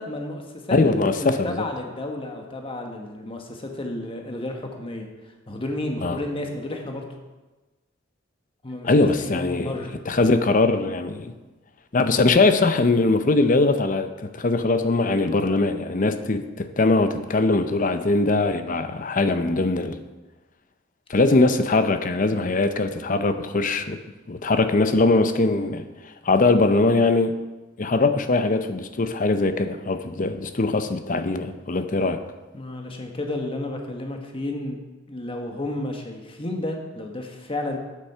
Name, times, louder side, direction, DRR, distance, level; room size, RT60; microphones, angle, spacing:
voice 1, 0.0-7.1 8.6-9.9 32.5-34.8 35.1-37.8, left 1 dB, 30° left, 3 dB, 1.2 m, -32 dB
voice 2, 0.7-1.6 6.0-6.2 8.8-9.7 10.1-11.3 11.9-20.0 21.1-24.0 24.3-25.8 26.2-27.3 27.8-32.2, left 3 dB, 45° left, 10 dB, 0.6 m, -21 dB
8.5 x 8.4 x 5.6 m, 1.2 s
head